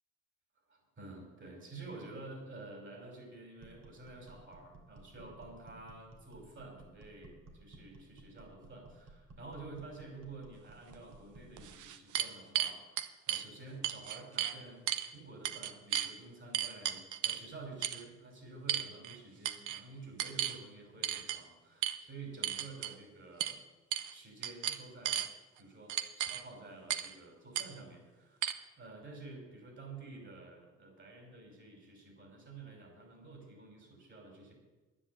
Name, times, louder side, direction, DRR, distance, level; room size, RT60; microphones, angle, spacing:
voice 1, 0.7-12.8 13.3-14.8 15.1-23.6 24.1-25.2 25.6-28.5 28.8-34.5, right 3 dB, 40° right, 2 dB, 5.7 m, -50 dB
sound 1, 3.6-11.8, right 2 dB, 60° right, 2.8 m, -56 dB
sound 2, 10.9-11.0 11.6-13.4 13.8-14.6 14.9-15.1 15.4-16.1 16.5-17.4 17.8-18.0 18.7-19.2 19.4-19.8 20.2-20.6 21.0-21.4 21.8-22.0 22.4-22.9 23.4-23.6 23.9-24.1 24.4-25.3 25.9-26.4 26.9-27.1 27.5-27.7 28.4-28.5, right 11 dB, 75° right, 0.9 m, -34 dB
10.5 x 9.9 x 8.6 m, 1.2 s
cardioid pair, 90°, 30 cm